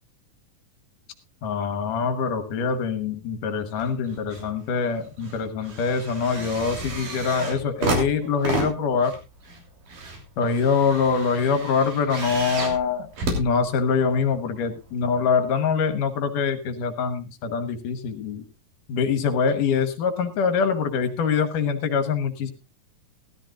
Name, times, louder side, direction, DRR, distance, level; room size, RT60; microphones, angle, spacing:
voice 1, 1.4-9.1 10.4-13.1 13.4-18.4 18.9-22.5, left 5 dB, 70° left, 10 dB, 2.7 m, -24 dB
sound 1, 3.8-4.5 4.8-14.2 15.0-15.1, right 3 dB, 70° right, 4.7 m, -32 dB
17.0 x 13.0 x 2.4 m, 0.26 s
omnidirectional pair, 3.9 m